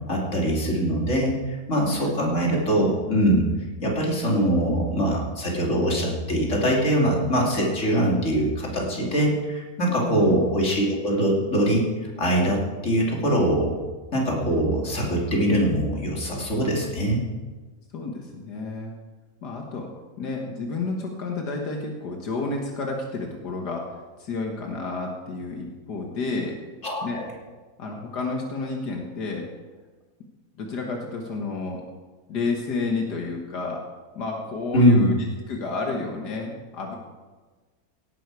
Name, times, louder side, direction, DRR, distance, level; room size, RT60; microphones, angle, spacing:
voice 1, 0.1-3.4 3.8-11.8 12.2-13.7 14.1-17.2 26.8-27.3 34.7-35.1, right 1 dB, 45° left, -2 dB, 3.1 m, -22 dB
voice 2, 10.1-10.4 17.9-18.9 19.4-19.9 20.2-26.6 27.0-27.2 27.8-29.5 30.6-31.8 32.3-33.8 34.2-35.1 35.5-37.0, left 3 dB, 80° left, 1 dB, 2.0 m, -30 dB
17.5 x 11.0 x 4.8 m, 1.3 s
omnidirectional pair, 1.7 m